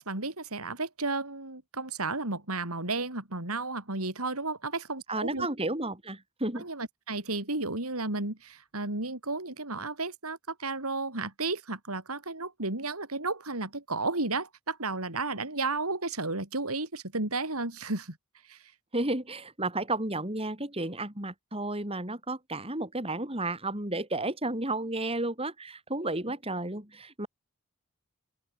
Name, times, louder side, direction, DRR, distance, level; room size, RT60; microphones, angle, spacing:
voice 1, 0.0-5.5 6.6-18.2 18.5-18.6, right 3 dB, 85° right, 5.5 m, -33 dB
voice 2, 5.1-6.6 18.9-27.3, right 2 dB, 25° right, 5.2 m, -32 dB
open air
head